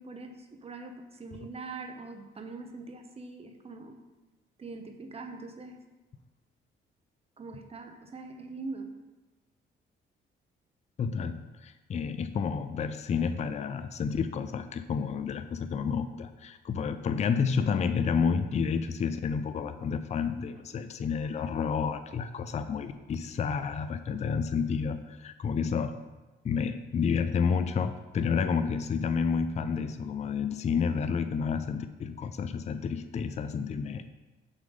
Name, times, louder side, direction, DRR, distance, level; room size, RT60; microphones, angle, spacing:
voice 1, 0.0-4.0 4.6-5.8 7.4-8.9, right 3 dB, 30° right, 6 dB, 0.8 m, -42 dB
voice 2, 11.0-25.9 26.4-34.0, left 6 dB, 35° left, 10 dB, 0.4 m, -30 dB
6.1 x 3.8 x 5.1 m, 1.2 s
cardioid pair, 90°, 20 cm